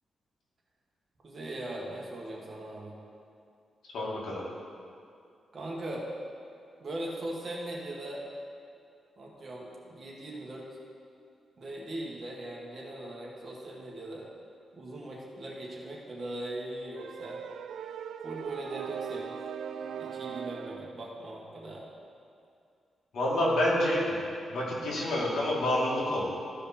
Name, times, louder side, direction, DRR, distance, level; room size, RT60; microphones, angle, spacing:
voice 1, 1.2-3.0 5.5-6.1 6.8-8.2 9.2-10.7 11.6-14.3 14.7-17.4 18.2-19.4 20.0-21.9, right 1 dB, 40° right, -4 dB, 1.7 m, -40 dB
voice 2, 3.9-4.4 23.1-24.2 24.5-26.3, left 1 dB, 75° left, -5 dB, 2.2 m, -28 dB
sound 1, 16.9-21.0, right 7 dB, 80° right, 0.3 m, -39 dB
14.0 x 5.0 x 4.4 m, 2.4 s
wide cardioid pair, 140°, 0 cm